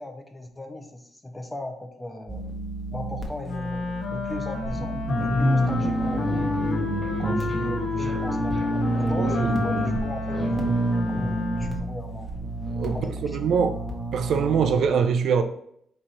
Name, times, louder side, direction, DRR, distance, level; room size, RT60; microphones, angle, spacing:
voice 1, 0.0-2.4 2.9-6.6 7.2-10.8 11.1-12.3 12.9-13.4, left 1 dB, 15° left, 0.7 m, -37 dB
sound 1, 2.3-14.7, right 1 dB, 25° right, 0.9 m, -28 dB
Wind instrument woodwind instrument, 3.4-12.0, left 4 dB, 60° left, 0.8 m, -31 dB
sound 2, 5.6-10.8, left 2 dB, 40° left, 1.6 m, -38 dB
voice 2, 7.2-7.7 9.1-9.8 12.8-13.8 14.1-15.4, right 6 dB, 70° right, 0.4 m, -24 dB
4.3 x 2.6 x 4.0 m
cardioid pair, 90°, 0 cm